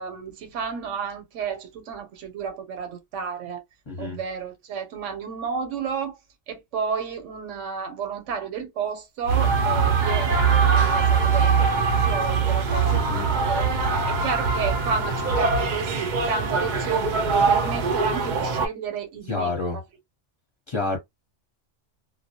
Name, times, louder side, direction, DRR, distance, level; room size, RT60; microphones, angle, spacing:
voice 1, 0.0-3.6 4.0-6.2 6.5-13.6 14.1-19.5, right 6 dB, 85° right, 1.0 m, -32 dB
voice 2, 3.9-4.2 12.9-13.3 19.3-19.8 20.7-21.0, left 3 dB, 30° left, 0.7 m, -28 dB
sound 1, 9.2-18.7, right 5 dB, 55° right, 0.5 m, -22 dB
2.1 x 2.1 x 2.7 m
omnidirectional pair, 1.2 m